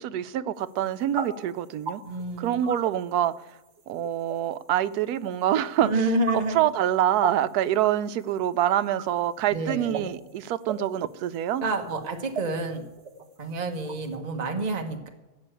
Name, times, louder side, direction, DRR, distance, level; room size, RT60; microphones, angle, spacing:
voice 1, 0.0-2.0 2.4-3.4 3.9-5.9 6.5-11.6, right 11 dB, 90° right, 1.1 m, -26 dB
sound 1, 0.6-14.1, right 4 dB, 50° right, 1.4 m, -38 dB
voice 2, 2.0-2.6 5.8-6.7 9.5-10.1 11.6-12.8 13.4-15.1, right 2 dB, 30° right, 1.1 m, -29 dB
13.5 x 6.1 x 8.9 m
omnidirectional pair, 1.6 m